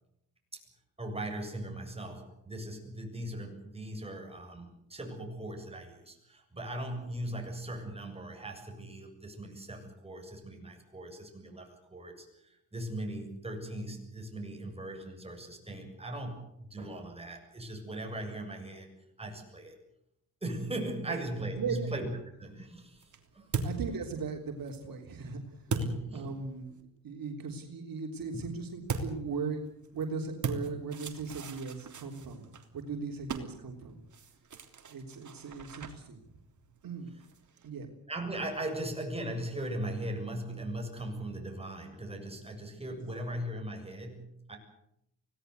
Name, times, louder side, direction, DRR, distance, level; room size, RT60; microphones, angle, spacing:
voice 1, 1.0-18.9 19.2-19.8 20.4-22.1 22.4-23.5 25.7-26.3 28.3-28.4 38.1-44.6, right 1 dB, 15° right, 3 dB, 7.5 m, -39 dB
voice 2, 21.6-21.9 23.6-25.7 26.1-26.7 27.0-29.6 29.9-34.0 34.9-36.3 36.8-37.1 37.6-37.9, right 5 dB, 70° right, 2 dB, 3.5 m, -38 dB
sound 1, 22.4-26.8 28.9-37.7, right 4 dB, 55° right, 3.4 m, -41 dB
24.5 x 18.0 x 8.2 m, 0.79 s
cardioid pair, 85°, 35 cm